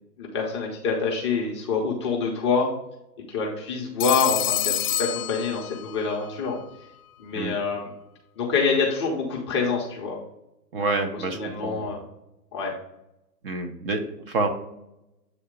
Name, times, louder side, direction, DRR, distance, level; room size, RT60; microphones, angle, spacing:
voice 1, 0.2-2.7 3.3-6.6 7.2-7.9 8.4-10.2 10.8-12.0 12.5-12.7, left 4 dB, 20° left, -2 dB, 0.6 m, -26 dB
Telephone, 4.0-6.1, left 10 dB, 65° left, 0.6 m, -27 dB
voice 2, 10.7-11.9 13.4-14.5, right 3 dB, 35° right, 6 dB, 0.7 m, -28 dB
8.0 x 2.8 x 4.9 m, 0.88 s
hypercardioid pair, 135°, 49 cm